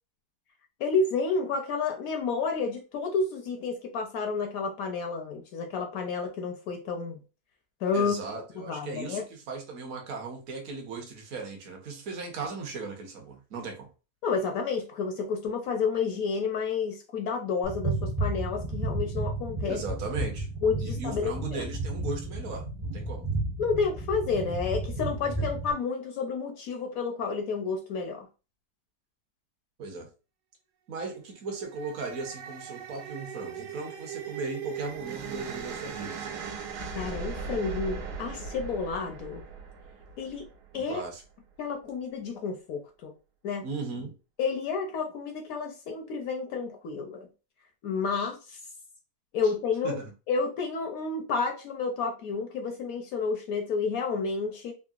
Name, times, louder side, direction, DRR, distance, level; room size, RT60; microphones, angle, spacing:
voice 1, 0.8-7.2 7.8-8.1 8.6-9.2 14.2-19.8 20.6-21.6 23.6-28.3 36.9-39.4 40.2-40.5 40.7-41.0 41.6-43.1 43.4-43.6 44.4-47.3 47.8-48.6 49.3-50.0 50.3-54.7, left 5 dB, 70° left, 3 dB, 0.9 m, -30 dB
voice 2, 7.9-13.9 19.6-20.5 20.8-23.3 25.4-25.5 29.8-30.1 30.9-36.4 40.7-41.2 43.6-44.1 49.4-49.5 49.8-50.1, right 4 dB, 60° right, 2 dB, 1.2 m, -37 dB
sound 1, 17.6-25.7, right 2 dB, 40° right, 0.5 m, -32 dB
sound 2, 31.5-40.8, right 5 dB, 85° right, 1.2 m, -39 dB
3.7 x 2.0 x 2.4 m, 0.32 s
omnidirectional pair, 1.7 m